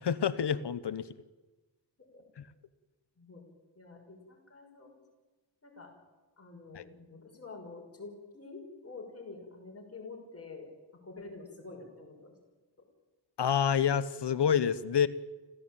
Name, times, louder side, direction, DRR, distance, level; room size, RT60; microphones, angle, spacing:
voice 1, 0.0-1.1 6.7-6.8 13.4-15.1, left 8 dB, 75° left, 14 dB, 1.2 m, -28 dB
voice 2, 3.8-4.9 5.6-5.9 6.4-10.7 11.0-12.3, left 3 dB, 35° left, 1 dB, 5.9 m, -47 dB
26.5 x 16.0 x 9.0 m, 1.2 s
wide cardioid pair, 170°, 42 cm